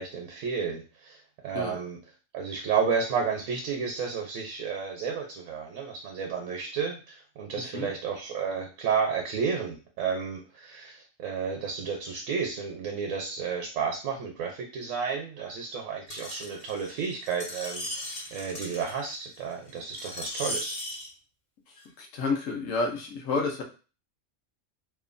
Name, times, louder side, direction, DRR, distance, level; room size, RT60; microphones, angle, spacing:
voice 1, 0.0-2.0 2.3-20.8, right 6 dB, 80° right, 1 dB, 1.0 m, -32 dB
Screech, 16.1-21.1 21.8-21.9, left 1 dB, 40° left, 0.8 m, -37 dB
voice 2, 21.7-23.6, left 3 dB, 80° left, 1 dB, 1.1 m, -30 dB
2.9 x 2.2 x 2.4 m, 0.34 s
omnidirectional pair, 1.3 m